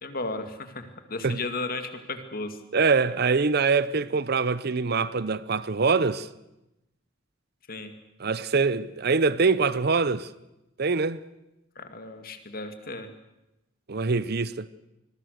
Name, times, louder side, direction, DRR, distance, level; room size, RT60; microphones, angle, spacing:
voice 1, 0.0-2.6 7.7-7.9 11.8-13.1, left 3 dB, 50° left, 2.3 m, -34 dB
voice 2, 2.7-6.3 8.2-10.3 10.8-11.2 13.9-14.7, right 4 dB, 55° right, 0.7 m, -24 dB
26.0 x 22.0 x 6.6 m
head